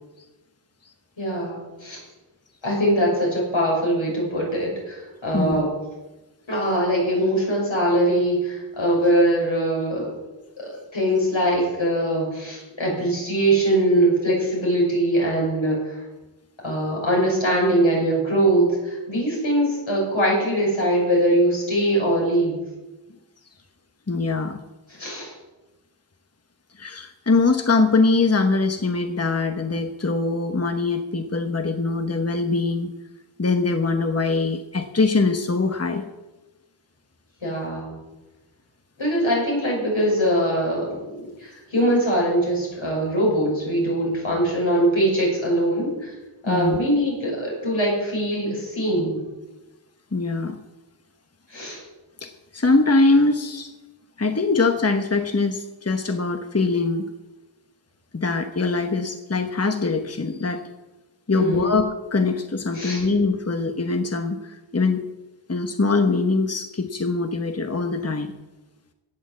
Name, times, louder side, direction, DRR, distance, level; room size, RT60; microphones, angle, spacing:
voice 1, 1.2-2.0 2.6-5.7 6.5-10.1 10.6-16.0 16.6-22.6 24.9-25.3 37.4-38.0 39.0-46.1 46.4-49.2 51.5-51.8 61.3-61.8 62.7-63.0, right 1 dB, 80° left, -3 dB, 6.3 m, -22 dB
voice 2, 24.1-24.6 26.8-32.9 33.4-36.0 46.5-46.8 50.1-50.6 52.2-53.7 54.2-57.0 58.1-60.6 61.3-65.0 65.5-68.3, left 3 dB, 30° left, 6 dB, 1.1 m, -22 dB
17.0 x 7.2 x 7.5 m, 1.1 s
wide cardioid pair, 50°, 46 cm